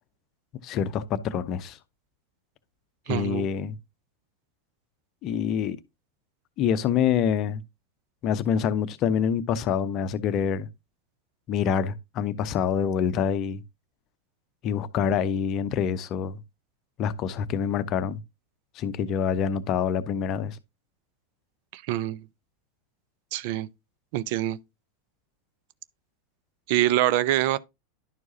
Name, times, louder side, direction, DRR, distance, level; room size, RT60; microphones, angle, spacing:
voice 1, 0.6-1.8 3.1-3.8 5.2-5.8 6.6-7.6 8.2-10.7 11.5-13.6 14.6-16.4 17.0-18.2 18.8-20.6, left 7 dB, 40° left, 0.7 m, -26 dB
voice 2, 3.1-3.5 21.7-22.3 23.3-23.7 24.1-24.6 26.7-27.6, right 14 dB, 50° right, 0.4 m, -25 dB
11.0 x 4.6 x 2.7 m
figure-of-eight pair, 85°, 0 cm